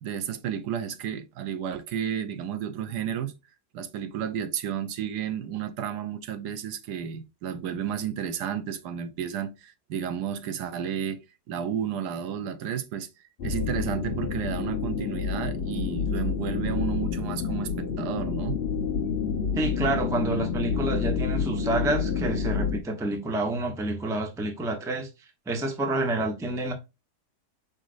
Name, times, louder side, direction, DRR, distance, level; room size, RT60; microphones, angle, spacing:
voice 1, 0.0-3.3 3.7-11.2 11.5-13.1 13.4-18.6, right 9 dB, 80° right, 1.3 m, -32 dB
sound 1, 13.4-22.8, left 6 dB, 45° left, 1.0 m, -29 dB
voice 2, 19.6-25.1 25.5-26.7, right 2 dB, 5° right, 0.5 m, -28 dB
5.0 x 4.1 x 2.5 m
omnidirectional pair, 1.7 m